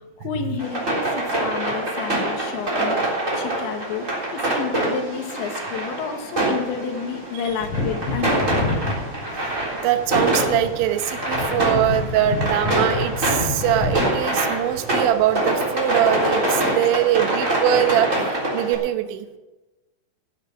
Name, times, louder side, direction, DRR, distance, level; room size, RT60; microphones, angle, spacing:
voice 1, 0.0-8.8, left 6 dB, 80° left, 5 dB, 3.8 m, -30 dB
sound 1, 0.6-18.7, right 1 dB, 20° right, 3.3 m, -25 dB
Wind / Thunder, 7.5-15.7 16.0-16.1, left 3 dB, 55° left, 3.2 m, -29 dB
voice 2, 9.7-19.3, right 12 dB, 80° right, 8 dB, 3.3 m, -22 dB
16.0 x 9.6 x 5.9 m, 1.1 s
omnidirectional pair, 5.3 m